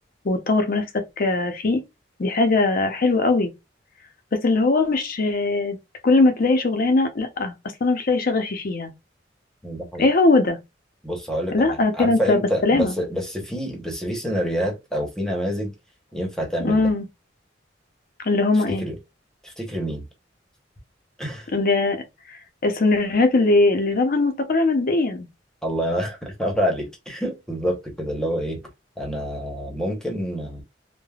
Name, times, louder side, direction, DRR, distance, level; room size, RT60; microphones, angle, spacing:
voice 1, 0.2-0.9 1.2-1.8 2.2-3.5 4.4-5.8 6.0-7.5 7.8-8.9 10.0-10.6 11.5-12.9 16.6-17.1 18.2-18.9 21.5-22.0 22.3-25.3, left 3 dB, 50° left, 0.6 m, -20 dB
voice 2, 9.6-10.1 11.0-15.7 16.1-16.9 18.5-19.0 19.4-20.0 21.2-21.5 25.6-28.6 29.0-30.6, equal, 5° left, 0.8 m, -27 dB
3.3 x 2.1 x 2.3 m
head